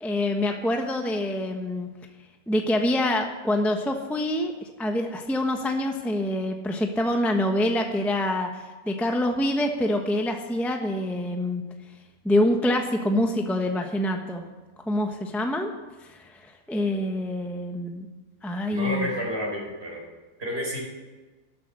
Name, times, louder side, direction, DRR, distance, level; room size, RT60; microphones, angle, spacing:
voice 1, 0.0-1.9 2.5-4.5 4.8-11.6 12.2-14.4 14.9-15.7 16.1-16.2 16.7-18.1 18.4-19.1, left 1 dB, ahead, 4 dB, 0.9 m, -25 dB
voice 2, 18.7-20.0 20.4-20.8, equal, 40° right, -3 dB, 4.7 m, -30 dB
12.5 x 12.5 x 6.6 m, 1.2 s
omnidirectional pair, 1.6 m